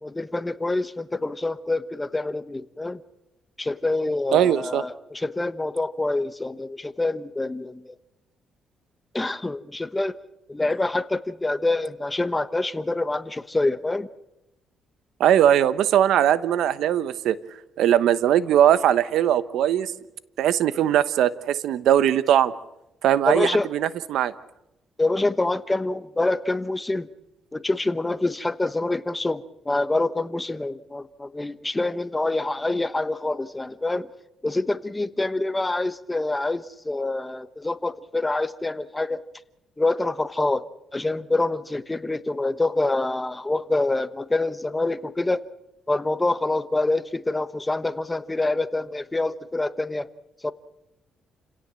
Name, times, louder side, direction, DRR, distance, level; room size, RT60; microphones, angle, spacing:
voice 1, 0.0-3.0 3.6-8.0 9.1-10.2 10.5-14.1 23.3-23.7 25.0-27.1 27.5-34.1 34.4-39.2 39.8-40.6 40.9-45.4 45.9-50.1 50.4-50.5, left 2 dB, 15° left, 12 dB, 1.1 m, -26 dB
voice 2, 4.3-4.8 15.2-17.4 17.8-19.9 20.4-22.5 23.0-24.3, right 10 dB, 80° right, 14 dB, 1.0 m, -20 dB
29.5 x 17.0 x 7.6 m, 0.93 s
cardioid pair, 90°, 0 cm